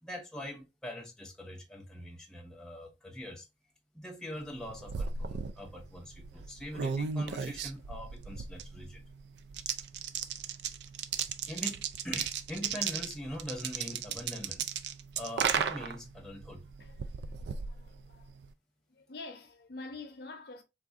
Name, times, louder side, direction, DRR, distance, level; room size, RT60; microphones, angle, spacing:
voice 1, 0.0-3.5 3.9-9.0 11.5-14.7 15.2-16.7, equal, 5° left, 0.5 m, -42 dB
sound 1, 4.5-18.5, right 7 dB, 70° right, 0.3 m, -36 dB
voice 2, 17.4-18.3 18.9-20.6, left 3 dB, 60° left, 0.6 m, -46 dB
3.6 x 2.5 x 2.4 m
head